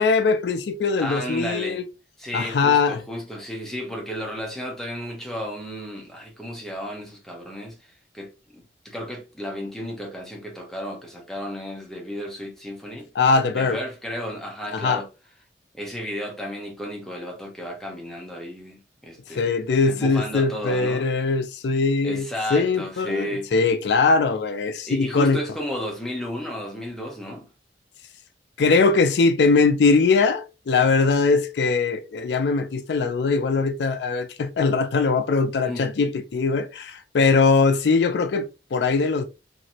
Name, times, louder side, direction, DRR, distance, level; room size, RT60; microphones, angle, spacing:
voice 1, 0.0-1.8 2.3-3.0 13.2-13.8 14.7-15.0 19.3-25.4 28.6-39.3, left 4 dB, 70° left, 0.4 m, -21 dB
voice 2, 1.0-1.8 2.2-13.1 13.5-15.1 15.7-19.5 19.9-21.1 22.0-23.5 24.9-27.5 35.6-35.9, equal, ahead, 0.7 m, -33 dB
2.9 x 2.6 x 2.7 m
head